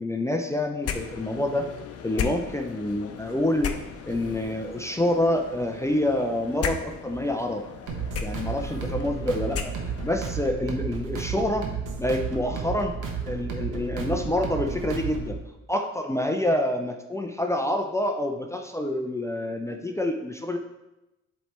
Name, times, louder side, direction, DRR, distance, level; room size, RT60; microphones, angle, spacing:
voice 1, 0.0-1.7 2.0-3.7 4.1-7.6 8.2-9.7 10.0-11.7 12.0-12.9 13.3-15.4 15.7-20.6, left 1 dB, 10° left, 3 dB, 0.5 m, -27 dB
sound 1, 0.8-10.2, left 7 dB, 55° left, 0.7 m, -36 dB
sound 2, 7.9-15.4, right 6 dB, 90° right, 1.2 m, -32 dB
7.8 x 3.3 x 4.3 m, 0.97 s
cardioid pair, 90°, 30 cm